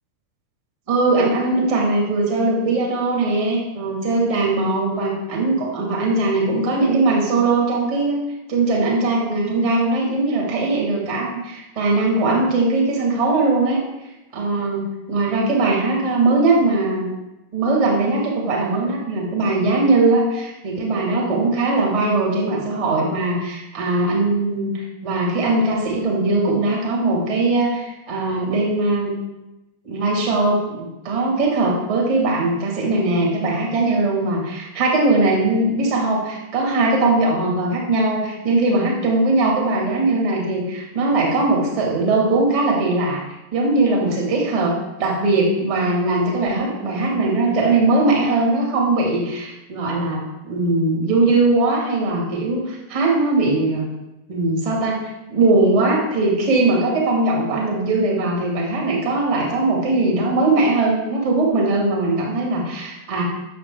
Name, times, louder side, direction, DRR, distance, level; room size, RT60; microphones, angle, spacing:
voice 1, 0.9-8.2 8.5-13.8 14.3-17.1 17.5-29.1 29.8-43.2 43.5-53.9 54.3-63.2, right 2 dB, 50° right, -3 dB, 2.5 m, -20 dB
6.8 x 5.0 x 4.6 m, 0.98 s
figure-of-eight pair, 90°, 0 cm